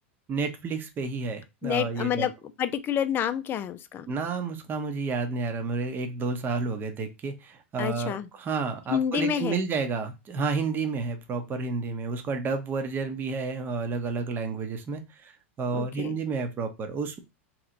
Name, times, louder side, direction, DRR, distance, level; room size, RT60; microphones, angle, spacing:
voice 1, 0.3-2.3 4.1-15.3 15.6-17.2, right 4 dB, 30° right, 0.9 m, -30 dB
voice 2, 1.6-2.3 2.6-4.1 7.8-8.3 8.9-9.6 15.7-16.2, left 9 dB, 30° left, 0.5 m, -28 dB
3.2 x 3.1 x 3.8 m
hypercardioid pair, 100°, 7 cm